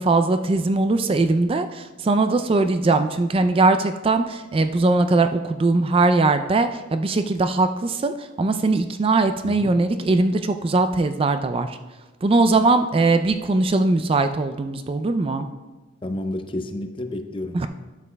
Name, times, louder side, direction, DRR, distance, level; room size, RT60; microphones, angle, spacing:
voice 1, 0.0-11.8 12.2-15.5 17.5-17.7, right 3 dB, 30° right, 9 dB, 0.3 m, -20 dB
voice 2, 9.4-9.7 15.4-15.5 16.0-17.7, left 1 dB, 30° left, 7 dB, 0.5 m, -30 dB
12.0 x 7.3 x 2.2 m, 1.2 s
head